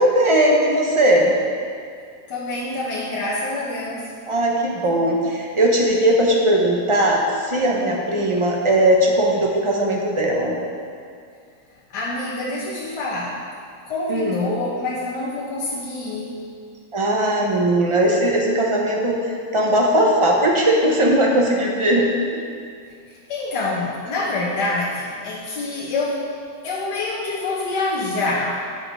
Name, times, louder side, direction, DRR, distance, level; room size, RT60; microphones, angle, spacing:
voice 1, 0.0-1.3 4.3-10.5 14.1-14.4 16.9-22.1, right 1 dB, 25° right, -1 dB, 0.8 m, -18 dB
voice 2, 2.3-4.1 11.9-13.4 13.8-16.4 23.1-26.3 26.6-28.6, left 2 dB, 75° left, -6 dB, 1.6 m, -26 dB
10.5 x 5.4 x 4.9 m, 2.2 s
omnidirectional pair, 1.8 m